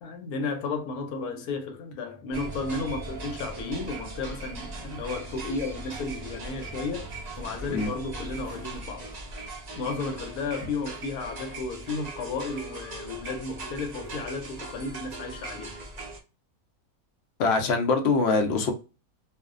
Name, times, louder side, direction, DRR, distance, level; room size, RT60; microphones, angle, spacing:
voice 1, 0.0-9.1 9.8-15.8, left 3 dB, 85° left, 1.1 m, -33 dB
sound 1, 2.3-16.2, right 2 dB, 85° right, 0.3 m, -39 dB
voice 2, 17.4-18.7, left 4 dB, 65° left, 0.7 m, -23 dB
2.5 x 2.1 x 2.4 m
omnidirectional pair, 1.5 m